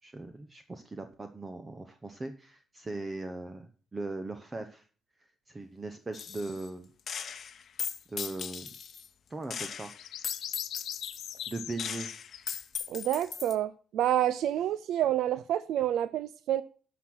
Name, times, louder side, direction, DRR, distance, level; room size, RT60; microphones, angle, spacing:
voice 1, 0.0-4.8 5.5-6.9 8.1-8.7 9.3-9.9 11.5-12.1, right 2 dB, 20° right, 0.8 m, -39 dB
Gunshot gunfire, 6.1-6.7 7.1-9.1 9.5-13.6, left 7 dB, 45° left, 0.9 m, -38 dB
sound 1, 8.6-8.7 9.9-12.8, left 10 dB, 75° left, 0.7 m, -41 dB
voice 2, 12.9-16.6, right 11 dB, 80° right, 0.5 m, -28 dB
12.0 x 6.1 x 6.2 m
cardioid pair, 140°, 0 cm